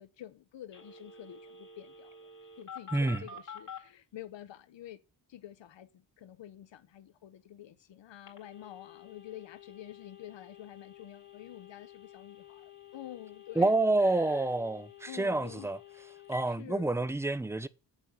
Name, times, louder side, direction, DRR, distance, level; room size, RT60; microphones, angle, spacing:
voice 1, 0.0-2.3 2.6-5.0 5.3-13.7 14.0-14.5 15.1-15.7 16.5-17.1, left 12 dB, 80° left, 0.9 m, -48 dB
Telephone, 0.7-3.8 8.3-16.4, left 6 dB, 45° left, 3.9 m, -50 dB
voice 2, 13.6-15.8 16.3-17.7, right 2 dB, 5° right, 0.5 m, -28 dB
7.9 x 7.4 x 8.0 m
wide cardioid pair, 130°, 44 cm